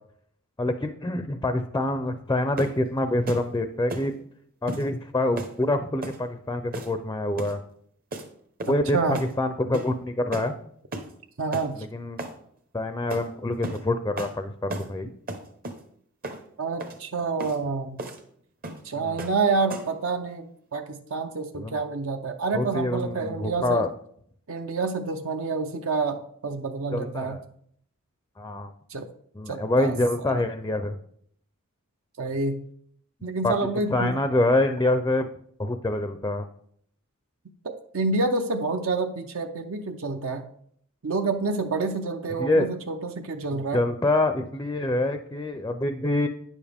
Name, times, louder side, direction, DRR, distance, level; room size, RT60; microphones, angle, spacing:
voice 1, 0.6-4.1 4.6-7.6 8.7-9.0 9.4-10.5 11.8-12.2 12.7-15.1 19.0-19.2 21.5-21.8 22.5-23.9 26.9-27.4 28.4-28.7 29.3-31.0 33.4-33.5 33.9-35.3 35.6-36.5 42.4-42.7 43.5-46.3, left 1 dB, 15° left, 8 dB, 0.4 m, -26 dB
sound 1, 2.6-2.8 3.3-3.5 3.9-4.1 4.7-4.9 5.4-5.6 6.0-6.2 6.7-7.0 7.4-7.6 8.1-8.3 8.6-8.9 9.1-9.3 9.7-9.9 10.3-10.5 10.9-11.1 11.5-11.7 12.2-12.4 13.1-13.3 13.6-13.8 14.2-14.4 14.7-14.9 15.3-15.8 16.2-16.4 16.8-17.0 17.4-17.6 18.0-18.2 18.6-18.8 19.2-19.4 19.7-20.0, right 2 dB, 45° right, 1.0 m, -35 dB
voice 2, 11.4-11.8 16.6-18.0 18.8-20.5 20.7-23.8 24.5-27.4 28.9-29.1 29.5-29.9 30.3-30.4 32.2-32.6 33.2-34.2 37.9-40.5 41.0-43.8, right 3 dB, 65° right, 6 dB, 0.6 m, -28 dB
9.4 x 7.1 x 3.5 m, 0.66 s
head